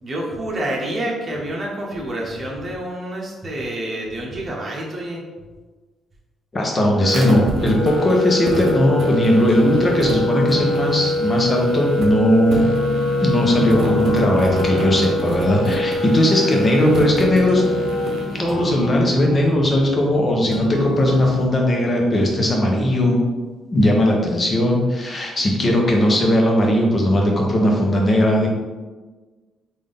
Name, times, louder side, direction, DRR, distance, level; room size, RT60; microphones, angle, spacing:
voice 1, 0.0-5.2 15.9-17.2 25.5-25.6, right 1 dB, 35° right, -2 dB, 1.0 m, -29 dB
voice 2, 6.5-12.7 13.2-17.6 18.3-23.2 23.7-28.5, left 1 dB, 30° left, 0 dB, 0.9 m, -18 dB
sound 1, 7.0-18.4, left 1 dB, 70° right, 0.7 m, -23 dB
sound 2, 7.6-21.5, left 2 dB, 70° left, 0.6 m, -30 dB
3.6 x 2.6 x 3.6 m, 1.3 s
cardioid pair, 90°, 0 cm